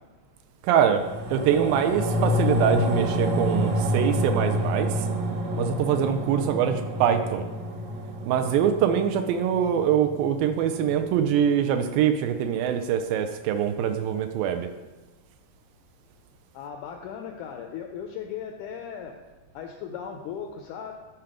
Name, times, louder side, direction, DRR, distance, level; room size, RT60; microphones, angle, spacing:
voice 1, 0.6-1.0 1.3-5.1 5.5-7.5 8.2-14.7, right 8 dB, 80° right, 8 dB, 2.3 m, -24 dB
sound 1, 0.8-11.4 11.8-11.9, equal, 65° right, 1.8 m, -28 dB
voice 2, 16.5-19.2 19.5-20.9, left 7 dB, 85° left, 4 dB, 1.8 m, -37 dB
11.5 x 4.6 x 5.0 m, 1.2 s
omnidirectional pair, 4.2 m